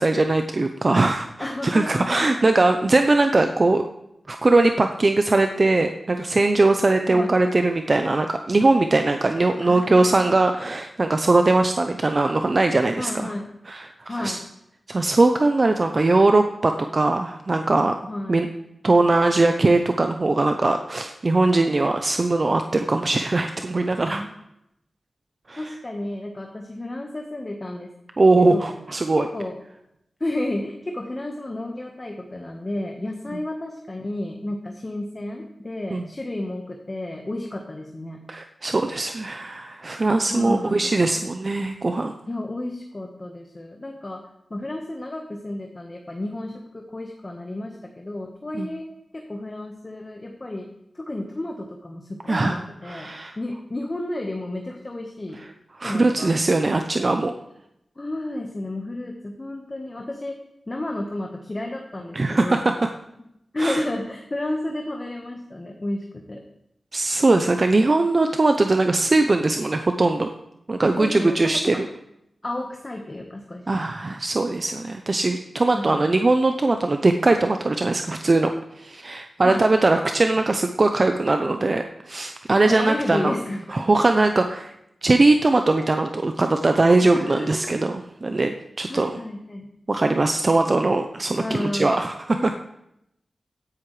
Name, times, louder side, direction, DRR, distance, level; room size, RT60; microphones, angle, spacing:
voice 1, 0.0-3.8 4.3-13.3 13.7-14.4 14.9-17.9 18.3-18.5 18.8-24.2 25.5-25.6 28.2-29.3 35.9-36.0 38.3-42.1 48.6-48.7 52.3-52.6 52.9-53.3 55.8-57.3 62.1-62.7 63.6-63.8 66.9-70.3 70.7-71.9 73.7-78.5 78.8-83.3 83.7-84.7 85.0-89.1 89.9-92.5, right 2 dB, 45° right, 6 dB, 0.6 m, -20 dB
voice 2, 1.4-2.3 7.1-7.3 9.6-10.4 13.0-13.5 14.1-14.5 18.1-18.4 24.1-24.3 25.6-27.9 28.4-28.7 29.2-29.5 30.2-38.2 40.3-41.1 42.3-44.2 44.5-48.9 49.1-53.1 53.4-55.4 55.8-56.3 58.0-60.4 60.7-62.6 63.5-66.4 71.0-71.8 72.4-73.8 75.7-76.1 79.4-79.6 82.6-83.9 87.1-87.8 88.9-89.7 91.4-92.0 92.4-92.5, left 1 dB, 30° left, 2 dB, 1.3 m, -32 dB
16.0 x 10.5 x 3.3 m, 0.81 s
wide cardioid pair, 75°, 0 cm